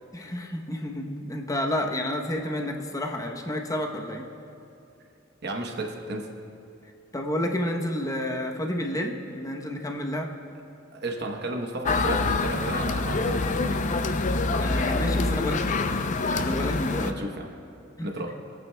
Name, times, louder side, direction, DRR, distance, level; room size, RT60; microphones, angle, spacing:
voice 1, 0.1-4.3 7.1-10.3 14.6-15.8 16.3-17.1 18.0-18.1, left 1 dB, 15° left, 2 dB, 0.8 m, -30 dB
voice 2, 5.4-6.3 10.9-13.9 17.0-17.5 18.0-18.3, right 2 dB, 55° right, 2 dB, 1.0 m, -33 dB
sound 1, 11.9-17.1, left 3 dB, 40° left, 0.5 m, -26 dB
25.0 x 8.9 x 2.2 m, 2.6 s
head